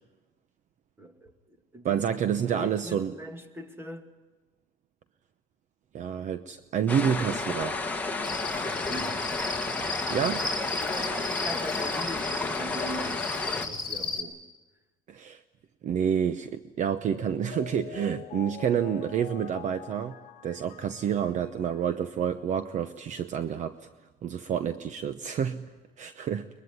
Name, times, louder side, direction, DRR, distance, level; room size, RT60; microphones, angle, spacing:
voice 1, 1.0-1.3 1.7-4.1 8.6-9.5 10.8-14.4, right 1 dB, 15° right, 6 dB, 2.3 m, -41 dB
voice 2, 1.8-3.2 5.9-7.8 10.1-10.5 15.1-15.4 15.8-23.9 24.2-26.5, right 8 dB, 45° right, 11 dB, 0.9 m, -29 dB
sound 1, 6.9-13.7, left 3 dB, 10° left, 1.7 m, -31 dB
Cricket, 8.2-14.2, left 3 dB, 25° left, 4.0 m, -35 dB
Mallet percussion, 17.0-22.0, left 12 dB, 60° left, 1.5 m, -45 dB
23.0 x 21.5 x 9.7 m, 1.2 s
cardioid pair, 140°, 17 cm